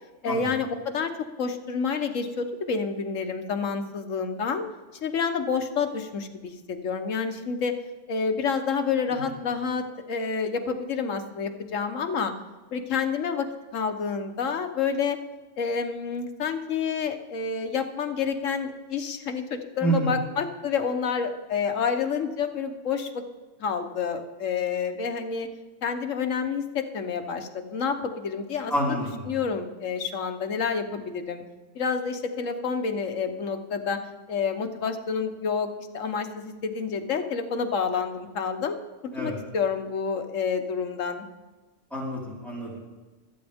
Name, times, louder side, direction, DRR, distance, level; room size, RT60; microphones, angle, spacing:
voice 1, 0.2-1.1 1.4-4.6 5.0-7.8 8.1-12.3 12.7-13.5 13.7-15.2 15.6-23.2 23.6-25.5 25.8-29.0 29.3-31.4 31.7-34.0 34.3-38.8 39.2-41.2, left 5 dB, 85° left, 7 dB, 1.4 m, -29 dB
voice 2, 19.8-20.2 28.7-29.3 39.1-39.4 41.9-42.8, right 1 dB, ahead, -6 dB, 4.3 m, -28 dB
25.0 x 8.9 x 3.5 m, 1.2 s
omnidirectional pair, 1.3 m